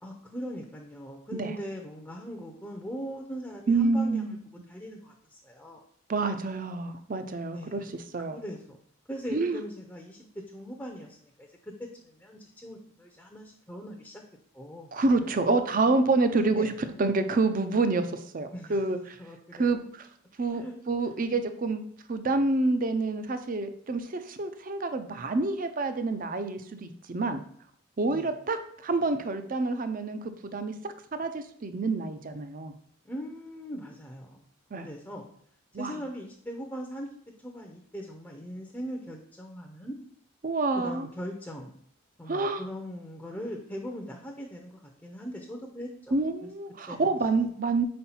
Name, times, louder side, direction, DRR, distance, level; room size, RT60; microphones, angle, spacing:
voice 1, 0.0-4.4 4.7-5.8 7.5-7.9 8.3-8.8 9.1-14.2 14.5-14.9 16.3-16.7 18.5-18.8 19.2-19.8 20.5-20.8 21.0-21.4 28.1-28.3 33.0-34.4 34.7-35.3 35.8-37.1 37.4-40.0 40.7-41.7 42.2-46.1 46.4-46.5 46.9-47.4, equal, 10° left, 1 dB, 0.6 m, -40 dB
voice 2, 3.7-4.4 6.1-8.4 9.3-9.6 14.9-16.7 17.0-19.2 19.5-19.8 20.4-21.8 22.1-27.4 28.0-32.7 34.7-34.9 35.7-35.9 40.4-41.1 42.3-42.6 46.1-47.8, right 3 dB, 40° right, 9 dB, 0.5 m, -28 dB
4.6 x 4.3 x 5.5 m, 0.63 s
head